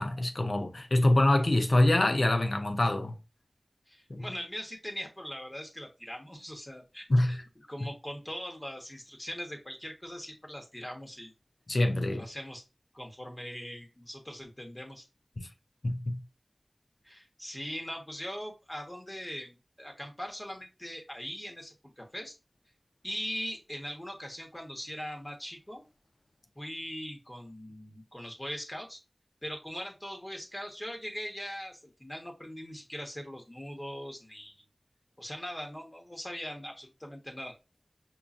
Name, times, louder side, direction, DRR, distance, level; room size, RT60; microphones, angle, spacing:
voice 1, 0.0-3.1 4.1-4.3 7.1-7.4 11.7-12.3 15.4-15.5 15.8-16.2, left 1 dB, 75° left, 0.5 m, -25 dB
voice 2, 3.9-7.4 7.7-11.3 12.1-12.6 12.9-15.0 17.0-22.3 23.0-25.8 26.5-29.0 29.4-34.6 35.2-37.5, equal, 25° left, 1.2 m, -41 dB
5.5 x 2.2 x 2.5 m
wide cardioid pair, 50°, 0 cm